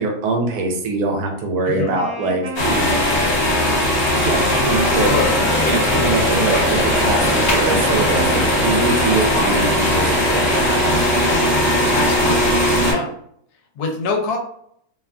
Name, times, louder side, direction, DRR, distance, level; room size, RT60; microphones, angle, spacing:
voice 1, 0.0-3.3 4.2-5.1 5.6-11.0, right 3 dB, 80° right, 1 dB, 1.1 m, -23 dB
voice 2, 1.7-2.0 4.9-5.3 11.9-12.6 12.8-13.1 13.8-14.4, left 3 dB, 80° left, 1 dB, 1.1 m, -24 dB
Wind instrument woodwind instrument, 1.9-10.1, right 1 dB, 45° right, 0.7 m, -31 dB
sound 1, 2.5-12.9, left 1 dB, 40° left, 1.4 m, -18 dB
sound 2, 5.2-11.6, right 1 dB, 20° right, 0.3 m, -28 dB
2.9 x 2.3 x 2.2 m, 0.68 s
omnidirectional pair, 1.7 m